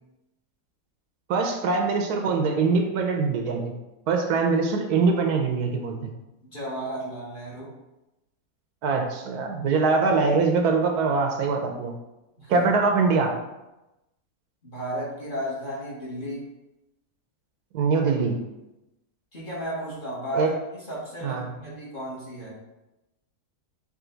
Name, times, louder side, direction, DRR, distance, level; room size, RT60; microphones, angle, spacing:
voice 1, 1.3-3.7 4.1-6.1 8.8-11.9 12.5-13.3 17.7-18.4 20.4-20.5 21.2-21.4, right 4 dB, 80° right, 3 dB, 1.1 m, -23 dB
voice 2, 6.4-7.7 12.4-12.7 14.6-16.5 19.3-22.6, right 1 dB, 35° left, -8 dB, 1.7 m, -33 dB
5.0 x 2.7 x 3.8 m, 0.97 s
omnidirectional pair, 1.7 m